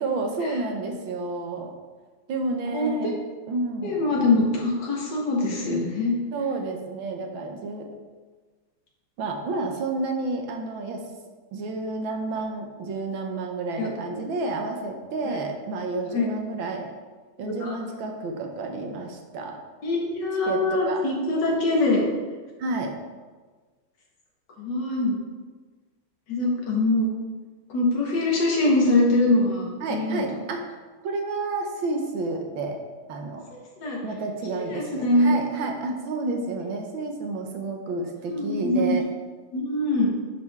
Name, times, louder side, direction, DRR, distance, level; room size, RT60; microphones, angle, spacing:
voice 1, 0.0-1.7 2.3-3.1 3.5-4.0 6.3-7.9 9.2-11.0 11.5-16.9 17.4-19.6 20.5-21.0 22.6-23.0 29.8-30.8 31.0-32.8 33.1-33.5 34.0-39.0, right 3 dB, 70° right, 3 dB, 1.7 m, -30 dB
voice 2, 2.7-3.1 3.8-6.1 13.8-13.9 15.2-15.4 16.1-16.3 17.4-17.7 19.8-22.0 24.6-25.2 26.3-27.1 27.7-30.4 33.5-34.0 34.7-35.3 38.2-38.9 39.5-40.1, left 2 dB, 55° left, -2 dB, 2.2 m, -23 dB
10.5 x 5.1 x 3.6 m, 1.4 s
omnidirectional pair, 2.3 m